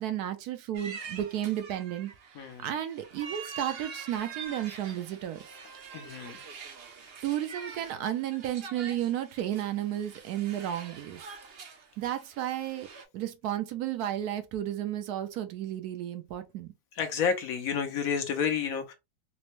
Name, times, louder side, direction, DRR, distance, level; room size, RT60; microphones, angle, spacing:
voice 1, 0.0-5.4 7.2-11.2 12.0-12.9 13.1-16.7, right 11 dB, 75° right, 1.0 m, -33 dB
sound 1, 0.7-13.0, right 5 dB, 55° right, 0.7 m, -45 dB
voice 2, 2.3-2.7 5.9-6.4 16.9-18.9, left 6 dB, 70° left, 1.0 m, -30 dB
4.1 x 2.1 x 3.0 m
omnidirectional pair, 1.7 m